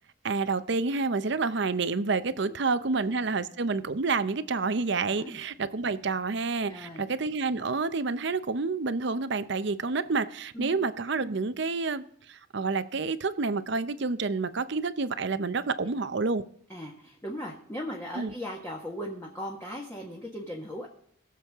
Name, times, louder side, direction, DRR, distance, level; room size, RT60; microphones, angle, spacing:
voice 1, 0.2-16.4 18.2-18.3, right 4 dB, 60° right, 0.7 m, -29 dB
voice 2, 6.7-7.0 10.5-10.8 16.7-20.9, equal, 15° left, 1.5 m, -38 dB
21.0 x 7.2 x 3.6 m
head